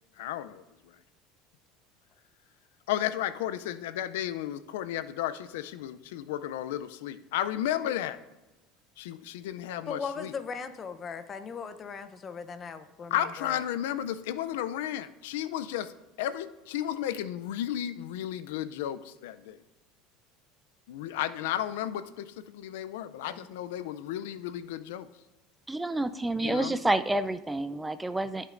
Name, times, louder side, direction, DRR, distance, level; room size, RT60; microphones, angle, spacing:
voice 1, 0.2-0.6 2.9-8.2 9.0-10.3 13.1-15.9 16.2-19.6 20.9-25.1 26.4-26.8, left 11 dB, 85° left, 13 dB, 0.4 m, -33 dB
voice 2, 9.9-13.6 23.2-23.5, left 5 dB, 30° left, 11 dB, 0.7 m, -38 dB
voice 3, 25.7-28.5, right 2 dB, 10° right, 11 dB, 0.4 m, -29 dB
14.0 x 6.6 x 2.5 m, 1.1 s
supercardioid pair, 110°, 0 cm